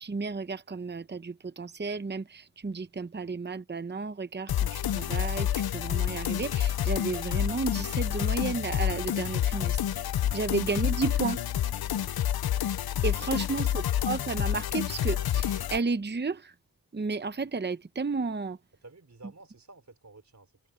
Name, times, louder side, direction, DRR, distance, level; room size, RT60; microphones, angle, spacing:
voice 1, 0.0-9.8 10.3-11.4 13.0-16.5 16.9-18.6, right 4 dB, 30° right, 0.9 m, -32 dB
sound 1, 4.5-15.8, left 11 dB, 80° left, 0.6 m, -28 dB
voice 2, 11.9-12.3 13.0-13.1 13.6-13.8 18.8-20.5, right 3 dB, 50° right, 4.5 m, -53 dB
wide cardioid pair, 60°, 36 cm